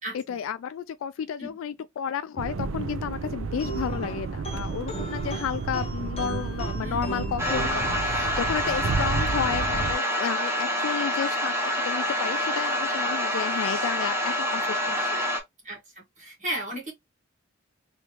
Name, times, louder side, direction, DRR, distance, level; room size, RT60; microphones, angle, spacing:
voice 1, 0.1-11.5 11.8-15.3, left 7 dB, 80° left, 0.3 m, -32 dB
sound 1, 2.4-9.9, right 4 dB, 90° right, 0.5 m, -31 dB
sound 2, 3.6-8.7, right 1 dB, 30° left, 0.8 m, -37 dB
voice 2, 6.8-7.2 12.6-12.8 14.9-15.0 15.6-16.9, right 1 dB, 40° right, 1.5 m, -35 dB
sound 3, 7.4-15.4, left 1 dB, 15° right, 1.0 m, -27 dB
3.1 x 3.1 x 2.8 m
head